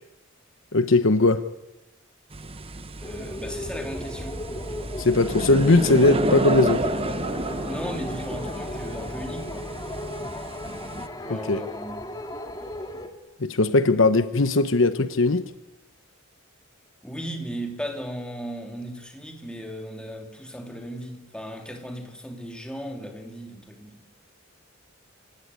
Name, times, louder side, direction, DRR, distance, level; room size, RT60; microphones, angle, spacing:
voice 1, 0.7-1.4 5.0-6.9 11.3-11.6 13.4-15.5, left 2 dB, 65° left, 1.0 m, -19 dB
sound 1, 2.3-11.1, right 2 dB, 30° right, 1.0 m, -31 dB
sound 2, 3.0-13.1, left 1 dB, 20° left, 2.2 m, -35 dB
voice 2, 3.0-4.5 7.6-9.7 11.2-12.0 17.0-24.0, equal, 5° left, 3.1 m, -36 dB
26.5 x 17.0 x 9.6 m
head